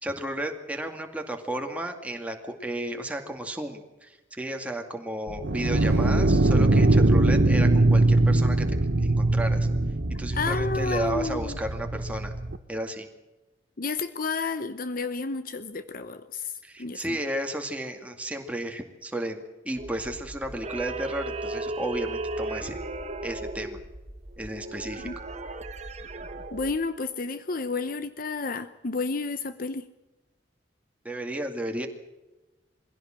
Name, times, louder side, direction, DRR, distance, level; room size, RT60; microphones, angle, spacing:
voice 1, 0.0-9.7 10.2-12.3 12.7-13.1 16.6-22.8 23.2-23.8 24.4-25.1 31.0-31.9, right 1 dB, 5° right, 4 dB, 2.2 m, -33 dB
sound 1, 5.3-12.6, right 2 dB, 60° right, 1.1 m, -22 dB
voice 2, 10.3-11.6 13.8-16.5 16.8-17.2 25.0-25.2 26.5-29.9, left 4 dB, 50° left, 11 dB, 0.9 m, -31 dB
sound 2, 19.8-26.8, right 2 dB, 35° right, 1.4 m, -36 dB
22.0 x 16.5 x 7.6 m, 1.1 s
head